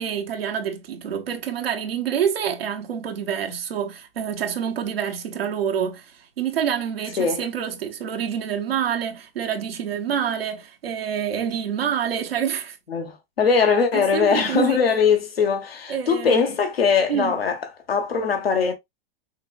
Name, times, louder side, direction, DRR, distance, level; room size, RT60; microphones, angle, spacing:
voice 1, 0.0-12.8 13.9-14.8 15.9-16.4 17.1-17.4, right 8 dB, 80° right, 1.1 m, -27 dB
voice 2, 12.9-17.6 17.9-18.7, left 6 dB, 85° left, 1.5 m, -21 dB
5.7 x 3.4 x 2.5 m
hypercardioid pair, 105°, 29 cm